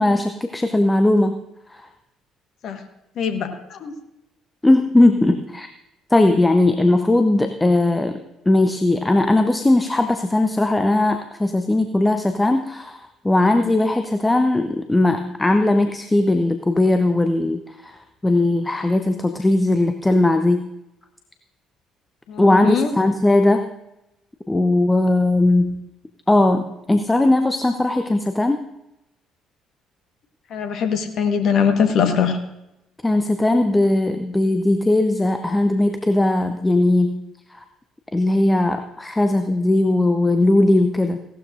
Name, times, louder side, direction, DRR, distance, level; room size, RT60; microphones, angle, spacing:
voice 1, 0.0-1.4 1.7-1.8 4.6-5.7 6.1-8.2 8.5-13.0 13.2-18.0 18.2-20.7 22.4-23.7 24.5-25.8 26.3-28.6 33.0-37.2 38.1-41.2, left 2 dB, 15° left, 7 dB, 0.8 m, -18 dB
voice 2, 3.2-3.9 22.3-22.9 30.5-32.4, left 7 dB, 55° left, 7 dB, 1.4 m, -21 dB
17.0 x 12.5 x 2.6 m, 0.91 s
figure-of-eight pair, 50°, 0 cm